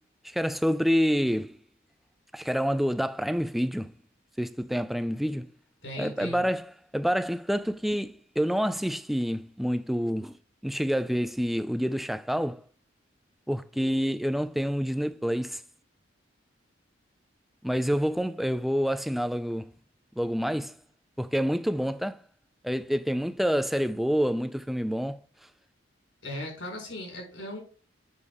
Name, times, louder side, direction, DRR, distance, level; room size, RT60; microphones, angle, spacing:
voice 1, 0.2-1.6 2.3-3.9 4.4-5.5 6.0-10.4 10.6-12.6 13.5-15.6 17.6-19.7 20.2-20.7 21.2-22.2 22.6-25.2, equal, ahead, 0.4 m, -27 dB
voice 2, 5.8-6.4 26.2-27.6, left 1 dB, 70° left, 4.7 m, -37 dB
8.3 x 6.6 x 3.6 m
head